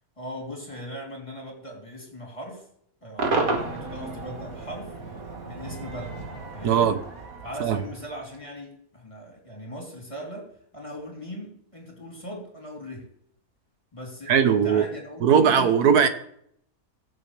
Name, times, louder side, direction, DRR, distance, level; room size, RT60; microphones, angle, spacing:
voice 1, 0.2-2.6 3.0-4.9 5.4-6.1 6.5-7.0 7.4-13.1 13.9-16.0, equal, 20° left, -1 dB, 3.7 m, -39 dB
Cheering / Crowd / Fireworks, 3.2-8.5, right 3 dB, 65° right, 2.1 m, -32 dB
voice 2, 6.6-7.0 7.6-7.8 14.3-14.9 15.2-16.1, right 7 dB, 85° right, 9 dB, 1.6 m, -19 dB
22.0 x 7.5 x 3.4 m, 0.68 s
omnidirectional pair, 1.6 m